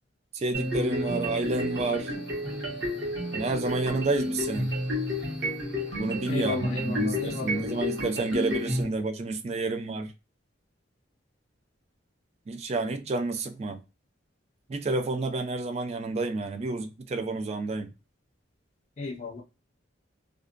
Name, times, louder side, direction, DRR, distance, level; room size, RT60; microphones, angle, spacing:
voice 1, 0.3-2.2 3.3-4.7 5.9-10.1 12.5-13.8 14.7-17.9, right 3 dB, 35° right, 0.3 m, -30 dB
sound 1, 0.5-8.8, left 1 dB, 60° right, 1.0 m, -31 dB
voice 2, 6.3-7.6 19.0-19.4, left 3 dB, 40° left, 0.4 m, -34 dB
2.4 x 2.1 x 2.4 m
head